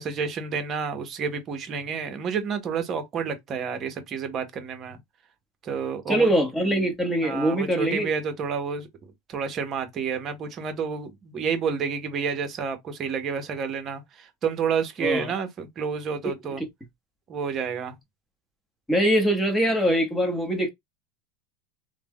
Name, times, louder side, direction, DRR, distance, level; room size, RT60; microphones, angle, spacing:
voice 1, 0.0-5.0 5.6-6.3 7.2-8.9 9.3-16.6 17.3-18.0, right 6 dB, 35° right, 0.8 m, -29 dB
voice 2, 6.1-8.1 15.0-15.3 18.9-20.7, equal, 10° left, 1.0 m, -23 dB
3.2 x 2.1 x 2.2 m
supercardioid pair, 110°, 0 cm